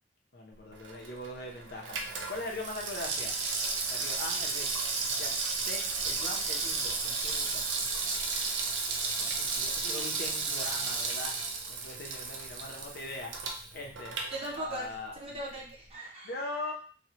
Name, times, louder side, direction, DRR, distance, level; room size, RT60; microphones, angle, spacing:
voice 1, 0.3-2.0 2.3-3.3 3.9-5.3 5.6-7.9 9.2-11.4 11.7-13.3 13.7-14.2 14.6-15.2 16.2-16.7, left 2 dB, 60° left, -1 dB, 0.8 m, -41 dB
Water tap faucet / Sink (filling or washing), 0.7-15.0 15.3-15.4, right 4 dB, 80° right, 0.5 m, -33 dB
voice 2, 14.3-14.9 15.2-16.3, right 1 dB, 35° right, -3 dB, 0.7 m, -39 dB
3.1 x 2.2 x 2.8 m, 0.41 s
head